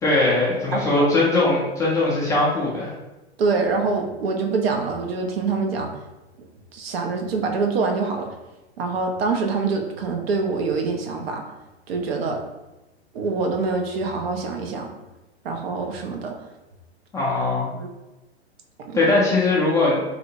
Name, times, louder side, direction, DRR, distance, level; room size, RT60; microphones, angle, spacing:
voice 1, 0.0-2.9 17.1-17.7 18.9-20.0, left 2 dB, 10° left, -7 dB, 0.3 m, -20 dB
voice 2, 0.7-1.1 3.4-5.9 6.7-8.3 8.8-11.4 11.9-12.4 13.1-14.9 15.4-16.3 17.7-17.9 18.9-19.0, right 4 dB, 65° right, 3 dB, 0.5 m, -25 dB
2.7 x 2.0 x 2.6 m, 1.0 s
figure-of-eight pair, 95°, 33 cm